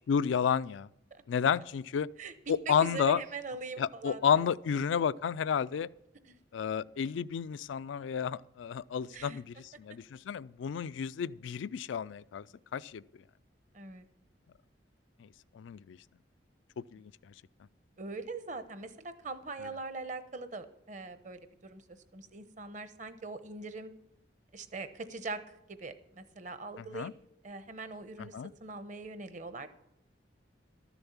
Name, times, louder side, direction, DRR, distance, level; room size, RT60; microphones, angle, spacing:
voice 1, 0.1-0.9 1.3-2.1 2.5-3.2 3.8-5.9 6.5-12.4 12.7-13.0 15.2-15.3 15.5-16.0 16.9-17.1 26.9-27.1 28.3-28.5, left 7 dB, 80° left, 0.3 m, -31 dB
voice 2, 2.7-4.4 6.3-6.4 9.1-9.4 13.7-14.0 18.0-21.8 22.1-23.9 24.5-25.4 25.7-27.1 27.4-28.3 28.6-29.7, right 3 dB, 40° right, 0.9 m, -42 dB
13.0 x 7.1 x 7.1 m
head